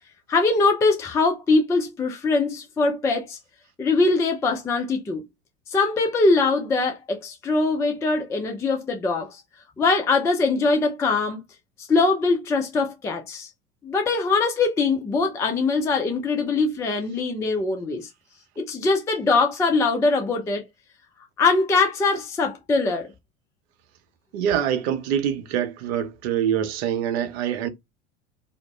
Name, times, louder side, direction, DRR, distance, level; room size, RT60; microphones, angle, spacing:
voice 1, 0.3-3.4 3.8-5.2 5.7-9.4 9.8-11.4 11.8-13.5 13.8-18.1 18.6-20.7 21.4-23.1, left 3 dB, 10° left, 0.4 m, -22 dB
voice 2, 24.3-27.7, right 9 dB, 55° right, 0.7 m, -25 dB
2.5 x 2.0 x 3.2 m
figure-of-eight pair, 80°, 38 cm